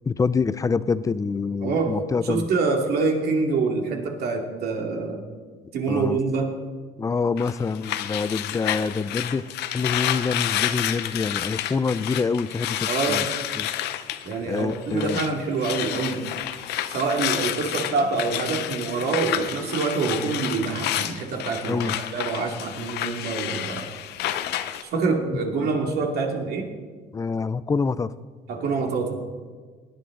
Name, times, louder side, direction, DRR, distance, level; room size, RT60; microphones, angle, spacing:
voice 1, 0.1-2.5 5.9-6.2 7.0-13.3 13.6-13.7 14.5-15.2 21.7-22.0 27.1-28.1, left 4 dB, 20° left, 16 dB, 0.4 m, -26 dB
voice 2, 1.6-2.0 2.2-5.2 5.7-6.5 12.9-13.3 14.2-16.3 16.9-23.9 24.8-26.7 28.5-29.2, right 4 dB, 70° right, 2 dB, 2.4 m, -26 dB
sound 1, 7.4-15.3 15.6-24.8, left 12 dB, 80° left, 0.8 m, -30 dB
18.5 x 10.5 x 3.9 m, 1.5 s
cardioid pair, 110°, 17 cm